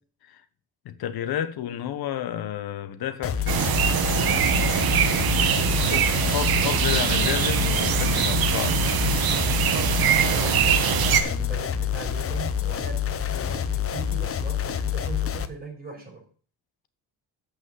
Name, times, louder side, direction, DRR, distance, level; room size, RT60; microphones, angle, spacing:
voice 1, 0.8-4.4 5.0-6.0 6.3-9.0, left 11 dB, 70° left, 1.2 m, -32 dB
sound 1, 3.2-15.5, left 9 dB, 35° left, 0.7 m, -27 dB
sound 2, 3.5-11.2, right 9 dB, 65° right, 1.2 m, -23 dB
voice 2, 5.6-6.4 9.6-16.2, right 4 dB, 20° right, 5.8 m, -38 dB
7.8 x 6.1 x 7.8 m
cardioid pair, 125°, 39 cm